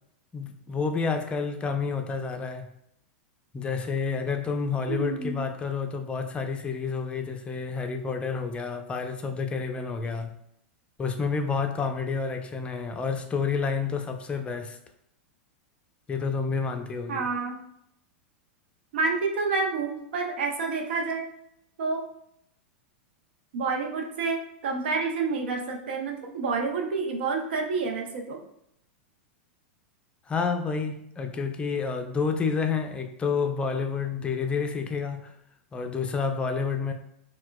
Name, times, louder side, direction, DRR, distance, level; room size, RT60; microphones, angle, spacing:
voice 1, 0.3-2.7 3.5-10.3 11.0-14.8 16.1-17.3 30.3-35.3 35.7-36.9, left 5 dB, 20° left, 5 dB, 0.4 m, -29 dB
voice 2, 4.9-5.4 17.1-17.6 18.9-21.2 21.8-22.0 23.5-28.4, right 4 dB, 70° right, 2 dB, 0.6 m, -28 dB
4.3 x 2.2 x 2.2 m, 0.75 s
hypercardioid pair, 100°, 6 cm